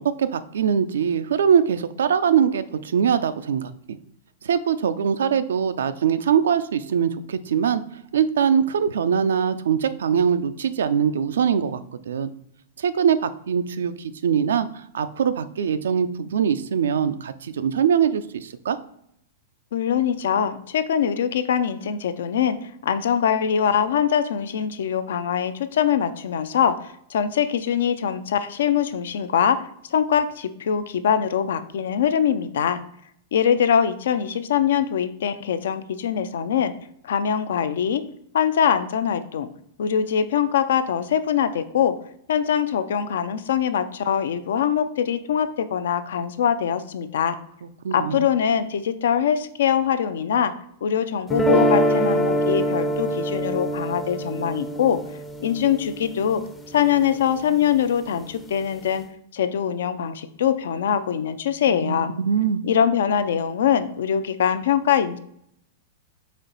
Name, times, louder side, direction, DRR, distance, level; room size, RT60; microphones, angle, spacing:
voice 1, 0.0-4.0 4.4-7.8 8.1-12.3 12.8-18.8 47.8-48.3 61.7-62.6, right 7 dB, 85° right, 12 dB, 0.3 m, -22 dB
voice 2, 19.7-22.6 22.8-29.6 29.9-32.8 33.3-36.7 37.0-38.0 38.3-39.5 39.8-42.0 42.3-47.4 47.9-50.5 50.8-55.0 55.4-56.4 56.7-59.0 59.3-62.1 62.6-65.2, left 8 dB, 80° left, 11 dB, 0.3 m, -23 dB
sound 1, 51.3-57.4, equal, 10° left, 0.4 m, -24 dB
4.2 x 3.0 x 3.9 m, 0.71 s
hypercardioid pair, 130°, 0 cm